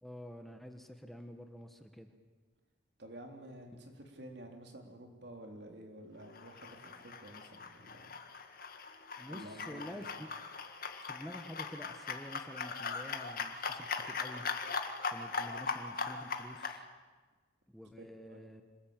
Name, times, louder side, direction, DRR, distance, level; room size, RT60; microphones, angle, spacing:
voice 1, 0.0-2.1 9.2-10.3 11.0-14.4 15.0-16.9 17.7-18.6, equal, ahead, 6 dB, 1.3 m, -48 dB
voice 2, 3.0-8.1 9.3-10.1 18.3-18.4, right 1 dB, 60° right, 3 dB, 3.8 m, -50 dB
sound 1, 6.3-16.8, left 5 dB, 50° left, 1.9 m, -40 dB
26.5 x 20.0 x 8.9 m, 1.4 s
head